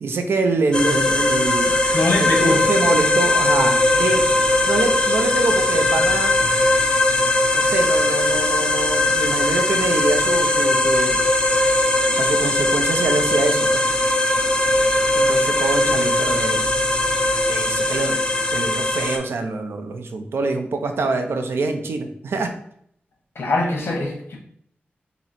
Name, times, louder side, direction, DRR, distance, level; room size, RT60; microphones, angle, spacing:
voice 1, 0.0-1.8 2.2-6.4 7.5-11.2 12.1-13.9 15.1-16.7 17.5-18.2 18.5-22.5, right 3 dB, 85° right, 6 dB, 0.5 m, -25 dB
sound 1, 0.7-19.2, left 2 dB, 25° left, 0.4 m, -19 dB
voice 2, 1.9-2.6 23.3-24.4, left 2 dB, 75° left, 0 dB, 1.0 m, -22 dB
3.0 x 2.7 x 4.2 m, 0.66 s
wide cardioid pair, 160°, 4 cm